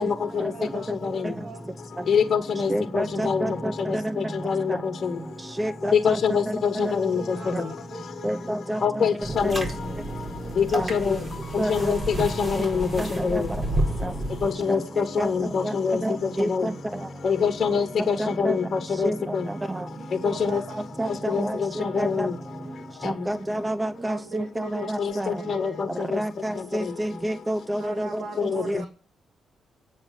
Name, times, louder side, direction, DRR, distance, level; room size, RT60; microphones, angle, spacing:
voice 1, 0.0-1.6 7.1-8.4 20.0-21.5 21.8-22.2 24.0-25.8 27.8-28.9, right 4 dB, 65° right, 2.5 m, -41 dB
voice 2, 2.1-3.5 3.9-4.0 4.4-4.8 5.9-7.2 8.8-9.6 10.6-11.2 11.5-13.4 14.4-16.0 16.4-16.6 17.2-19.1 20.2-20.6 21.3-22.3 23.0-23.1 25.0-25.9 28.4-28.6, left 6 dB, 55° left, 1.3 m, -24 dB
voice 3, 2.7-4.2 5.6-6.2 6.5-6.9 7.5-7.6 8.2-9.1 9.4-9.5 10.8-10.9 11.6-11.7 13.0-13.4 14.0-14.1 15.2-15.7 16.0-16.7 18.2-18.6 19.0-19.2 19.7-19.8 21.0-22.3 23.0-25.3 26.1-28.2 28.7-28.8, right 1 dB, 20° right, 0.8 m, -29 dB
sound 1, 9.2-14.5, right 1 dB, 40° right, 4.6 m, -31 dB
9.3 x 7.5 x 9.1 m
supercardioid pair, 60°, 0 cm